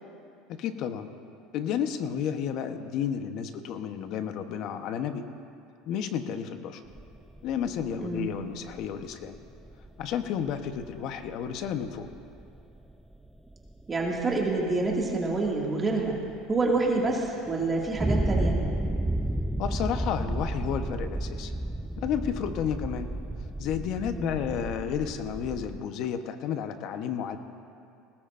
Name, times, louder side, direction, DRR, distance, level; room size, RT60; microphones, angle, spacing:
voice 1, 0.5-1.1 1.5-5.2 5.9-6.8 7.4-9.4 10.0-12.1 19.6-21.5 22.0-23.1 23.6-27.4, left 8 dB, 60° left, 8 dB, 1.0 m, -31 dB
sound 1, 6.9-25.8, right 1 dB, 5° right, 0.5 m, -33 dB
voice 2, 8.0-8.3 13.9-16.2 16.5-18.6 24.1-24.4, right 3 dB, 25° right, -2 dB, 2.2 m, -27 dB
21.0 x 18.0 x 2.6 m, 2.5 s
supercardioid pair, 105°, 0 cm